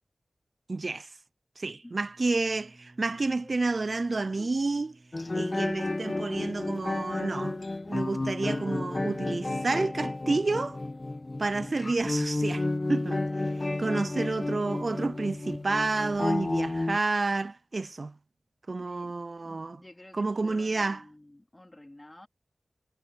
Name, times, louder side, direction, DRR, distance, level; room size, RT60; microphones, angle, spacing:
voice 1, 0.7-1.1 1.6-4.9 5.3-7.6 7.9-10.8 11.4-13.2 13.6-18.2 18.7-19.8 20.1-21.1, right 3 dB, 55° right, 0.4 m, -30 dB
Bowed string instrument, 1.8-8.4, right 2 dB, 35° right, 7.7 m, -59 dB
sound 1, 5.1-17.0, left 2 dB, 40° left, 1.2 m, -31 dB
voice 2, 18.8-22.3, left 1 dB, 25° left, 3.1 m, -51 dB
wide cardioid pair, 55°, 0 cm